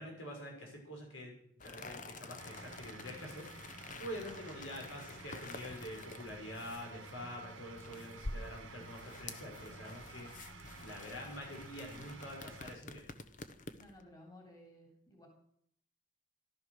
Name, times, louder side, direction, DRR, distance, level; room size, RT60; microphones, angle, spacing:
voice 1, 0.0-1.3 1.6-13.1, equal, 85° left, 0 dB, 6.3 m, -46 dB
sound 1, 1.6-14.0, left 2 dB, 40° left, 1.0 m, -49 dB
sound 2, 2.4-12.7, right 3 dB, 90° right, 1.6 m, -52 dB
voice 2, 13.8-15.3, left 1 dB, 20° left, 1 dB, 3.2 m, -56 dB
14.5 x 12.5 x 6.6 m, 0.69 s
head